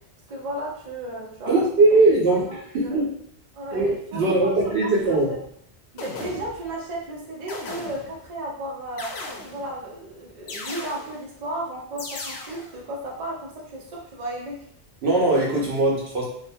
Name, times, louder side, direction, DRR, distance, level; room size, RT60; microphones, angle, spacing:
voice 1, 0.3-1.5 2.3-3.0 3.5-5.4 5.9-9.1 9.4-14.7, right 1 dB, 40° right, -3 dB, 0.7 m, -34 dB
voice 2, 1.5-2.5 2.7-3.0 3.7-5.3 15.0-16.2, right 2 dB, 70° right, -3 dB, 0.9 m, -20 dB
sound 1, 5.0-5.2 6.0-6.7 7.5-8.3 9.0-9.8 10.5-11.3 12.0-12.8, left 2 dB, 70° left, 0.8 m, -37 dB
2.8 x 2.1 x 2.6 m, 0.64 s
omnidirectional pair, 1.1 m